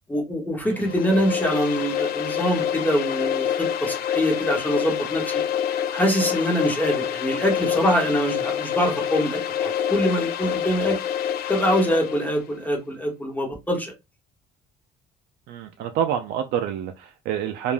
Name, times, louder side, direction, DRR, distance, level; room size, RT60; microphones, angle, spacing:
voice 1, 0.1-5.4 5.9-11.0 11.5-13.9, equal, 10° left, 1.0 m, -24 dB
voice 2, 0.6-0.9 15.5-17.7, right 9 dB, 75° right, 0.4 m, -27 dB
sound 1, 0.7-12.4, left 9 dB, 65° left, 0.4 m, -27 dB
2.4 x 2.1 x 3.2 m
cardioid pair, 110°, 17 cm